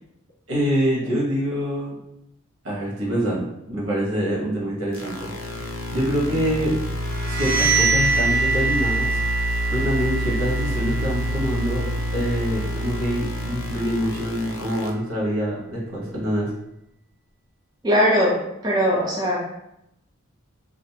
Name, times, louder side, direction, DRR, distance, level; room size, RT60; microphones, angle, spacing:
voice 1, 0.5-2.0 2.6-6.7 7.2-16.5, equal, 70° right, -5 dB, 1.0 m, -26 dB
sound 1, 4.9-14.9, equal, 70° left, 0.5 m, -28 dB
sound 2, 7.0-12.6, right 4 dB, 15° left, 0.7 m, -25 dB
voice 2, 17.8-19.4, equal, 20° right, -4 dB, 0.4 m, -20 dB
2.5 x 2.4 x 2.8 m, 0.82 s
head